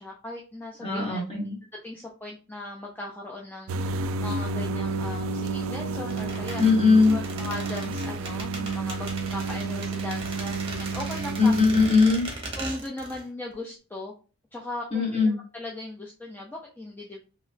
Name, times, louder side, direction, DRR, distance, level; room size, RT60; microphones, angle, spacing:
voice 1, 0.0-1.2 1.8-3.7 4.2-6.6 7.0-11.5 12.6-14.1 14.5-17.3, left 2 dB, 10° left, -1 dB, 0.4 m, -38 dB
voice 2, 0.8-1.6 6.6-7.2 11.4-12.3 14.9-15.4, left 4 dB, 25° left, -3 dB, 1.4 m, -20 dB
sound 1, 3.7-11.9, right 3 dB, 65° right, 0.3 m, -31 dB
sound 2, 6.1-13.2 13.5-13.6, right 2 dB, 25° right, 0.9 m, -38 dB
3.0 x 2.9 x 2.6 m, 0.35 s
head